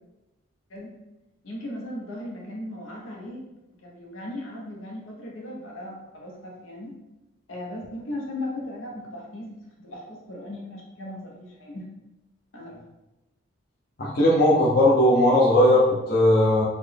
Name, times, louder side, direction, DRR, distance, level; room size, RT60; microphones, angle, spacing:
voice 1, 1.4-3.4 3.8-6.9 7.5-11.9 12.5-12.8, left 1 dB, 80° left, -2 dB, 0.9 m, -37 dB
voice 2, 14.0-16.6, left 1 dB, 50° left, -6 dB, 0.7 m, -18 dB
4.0 x 2.2 x 3.3 m, 0.99 s
head